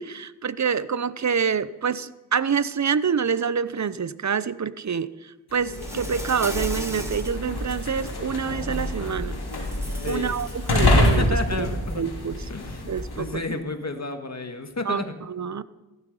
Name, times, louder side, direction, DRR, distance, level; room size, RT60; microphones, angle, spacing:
voice 1, 0.0-5.1 5.5-9.4 10.1-11.7 12.0-12.4 12.9-13.4 14.9-15.6, right 6 dB, 45° right, 16 dB, 0.7 m, -26 dB
sound 1, 5.5-13.4, left 1 dB, 70° left, 2.9 m, -26 dB
Insect, 5.6-7.4 7.9-8.1 9.4-11.3, right 1 dB, 5° right, 3.0 m, -39 dB
voice 2, 10.0-10.4 11.2-12.0 12.5-12.9 13.1-15.1, left 3 dB, 40° left, 6 dB, 2.0 m, -31 dB
15.0 x 12.5 x 5.5 m, 1.1 s
cardioid pair, 50°, 40 cm